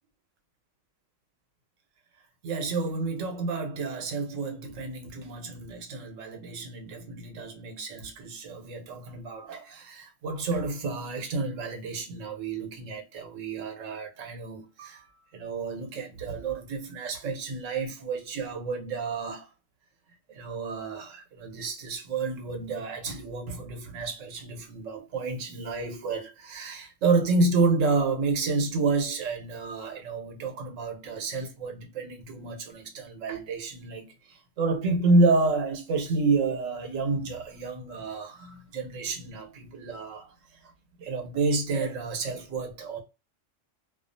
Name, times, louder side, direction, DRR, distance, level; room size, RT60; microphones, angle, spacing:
voice 1, 2.4-15.1 15.3-19.5 20.3-40.3 40.6-40.7 41.0-43.0, right 3 dB, 85° right, 1.1 m, -30 dB
2.3 x 2.3 x 2.6 m
omnidirectional pair, 1.3 m